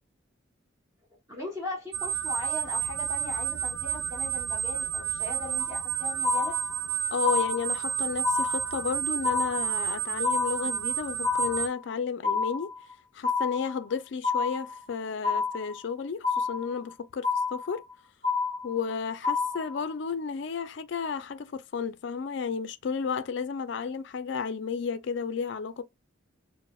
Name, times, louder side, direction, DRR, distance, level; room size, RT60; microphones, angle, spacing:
voice 1, 1.3-6.6, left 2 dB, 15° right, 0.8 m, -38 dB
sound 1, 1.9-11.7, right 9 dB, 70° right, 0.4 m, -31 dB
sound 2, 5.6-5.9 6.2-6.9 7.2-7.9 8.2-8.9 9.2-9.9 10.2-10.9 11.2-11.9 12.2-12.9 13.2-13.9 14.2-14.9 15.2-15.9 16.2-16.9 17.2-17.9 18.2-18.9 19.2-19.9, left 4 dB, 35° left, 0.7 m, -29 dB
voice 2, 7.1-12.7 13.1-17.8 18.6-25.8, left 6 dB, 60° left, 0.4 m, -32 dB
4.0 x 2.0 x 2.2 m
head